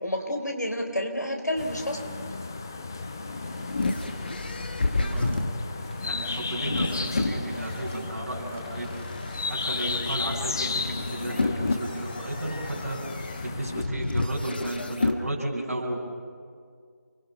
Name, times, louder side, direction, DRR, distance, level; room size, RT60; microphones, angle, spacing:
voice 1, 0.0-2.1, left 1 dB, 75° left, 4 dB, 4.6 m, -29 dB
sound 1, 1.6-13.8, left 3 dB, 10° left, 0.6 m, -34 dB
sound 2, 3.0-8.0 8.6-15.2, left 2 dB, 30° left, 1.3 m, -31 dB
voice 2, 5.0-5.3 6.0-8.9 9.6-13.0 13.4-16.1, right 1 dB, 50° right, -1 dB, 7.0 m, -33 dB
29.5 x 22.0 x 5.8 m, 2.1 s
figure-of-eight pair, 170°, 9 cm